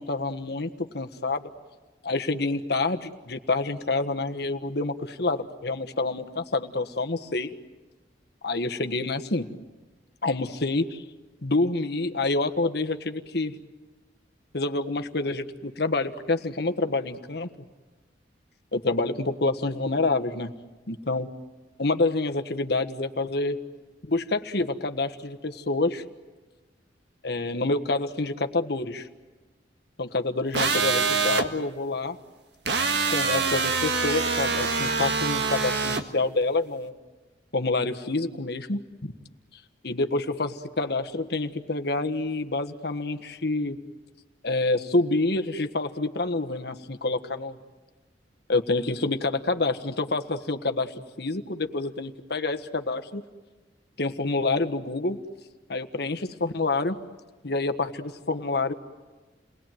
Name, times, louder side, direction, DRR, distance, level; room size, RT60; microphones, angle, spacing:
voice 1, 0.0-1.5 2.0-7.5 8.4-9.5 10.2-11.0 11.4-13.5 14.5-17.5 18.7-20.5 20.9-21.3 21.8-23.6 24.0-26.0 27.2-29.1 30.0-32.2 33.1-36.9 37.5-39.1 39.8-43.8 44.4-47.6 48.5-53.2 54.0-55.2 55.7-57.0 57.4-58.7, left 2 dB, 65° left, 8 dB, 1.5 m, -27 dB
sound 1, 30.5-31.5 32.7-36.0, right 4 dB, 65° right, 1.7 m, -25 dB
30.0 x 20.5 x 9.2 m, 1.3 s
head